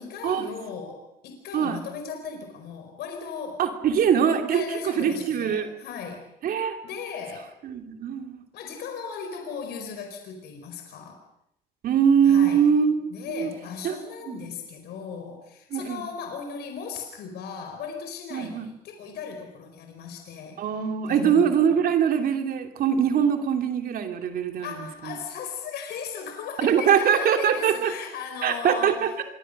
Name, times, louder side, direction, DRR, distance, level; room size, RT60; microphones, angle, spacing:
voice 1, 0.0-3.6 4.5-6.3 6.8-7.5 8.5-11.2 12.2-12.7 13.1-21.6 24.6-29.2, left 6 dB, 75° left, 5 dB, 4.6 m, -37 dB
voice 2, 3.6-5.7 6.4-6.8 7.6-8.4 11.8-13.1 13.3-13.5 13.8-14.0 14.3-14.4 15.7-16.0 18.3-18.7 20.6-24.7 25.1-25.2 26.6-27.9 28.4-29.2, right 8 dB, 60° right, 5 dB, 2.9 m, -22 dB
27.0 x 22.5 x 6.6 m, 0.78 s
cardioid pair, 110°, 17 cm